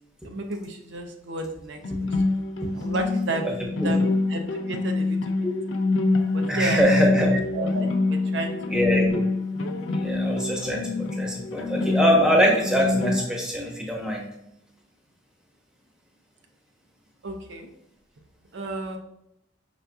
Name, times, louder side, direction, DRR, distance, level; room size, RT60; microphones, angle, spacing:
voice 1, 0.2-2.3 2.7-5.2 6.3-6.8 7.2-8.6 17.2-17.7 18.5-19.0, right 2 dB, 60° right, 4 dB, 0.5 m, -32 dB
sound 1, 1.8-13.3, left 3 dB, 65° left, 0.4 m, -25 dB
voice 2, 6.5-7.3 8.7-9.2 9.9-14.3, equal, 5° right, -1 dB, 0.8 m, -23 dB
5.5 x 3.9 x 2.3 m, 0.80 s
head